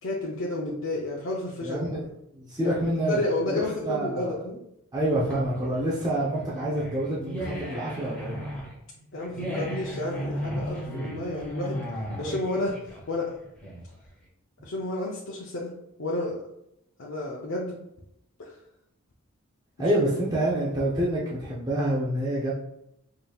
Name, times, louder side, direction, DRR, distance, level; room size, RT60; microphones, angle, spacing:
voice 1, 0.0-1.8 2.6-2.8 3.1-4.6 9.1-11.8 12.2-13.3 14.6-15.7 16.0-16.4 17.0-17.8 18.4-18.6, left 2 dB, 60° left, -4 dB, 0.5 m, -31 dB
voice 2, 1.6-2.0 2.3-4.3 4.9-8.4 19.8-22.5, right 1 dB, 15° right, -7 dB, 0.6 m, -27 dB
sound 1, 5.0-14.1, equal, 5° left, 0.9 m, -36 dB
5.0 x 2.8 x 2.3 m, 0.80 s
head